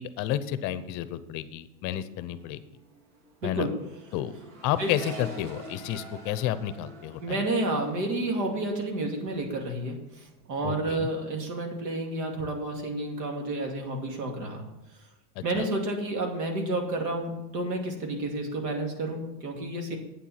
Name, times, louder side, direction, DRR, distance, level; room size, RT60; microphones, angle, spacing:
voice 1, 0.0-2.6 3.4-3.7 4.1-4.3 4.6-7.4 10.6-11.1 15.4-15.7, left 12 dB, 40° left, 14 dB, 0.6 m, -31 dB
Accelerating revving vroom, 1.9-2.1 2.4-9.9 10.2-10.8, right 2 dB, 60° right, 2.5 m, -46 dB
voice 2, 3.4-3.7 4.8-4.9 7.2-14.7 15.4-20.0, right 2 dB, 85° right, 2 dB, 2.7 m, -30 dB
8.8 x 7.4 x 5.8 m, 0.95 s
supercardioid pair, 140°, 47 cm